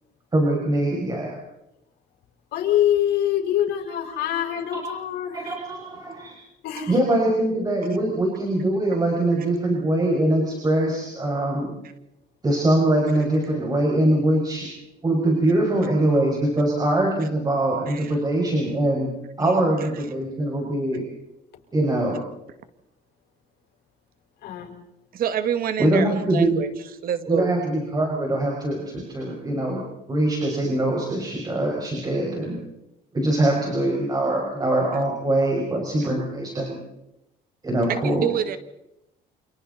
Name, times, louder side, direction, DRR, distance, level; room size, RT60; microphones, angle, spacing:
voice 1, 0.3-1.4 4.7-4.8 5.3-6.4 6.9-11.8 12.4-14.7 15.0-19.1 19.4-21.1 21.7-22.2 25.8-26.6 27.3-32.6 33.1-36.8 37.6-38.3, right 1 dB, 25° right, -1 dB, 6.0 m, -23 dB
voice 2, 2.5-5.5 6.6-7.0 24.4-24.7, left 11 dB, 75° left, 2 dB, 5.3 m, -24 dB
voice 3, 19.4-19.7 25.1-26.7 27.0-27.5 37.9-38.6, right 9 dB, 60° right, 10 dB, 2.0 m, -27 dB
29.5 x 27.5 x 4.2 m, 0.90 s
cardioid pair, 110°, 17 cm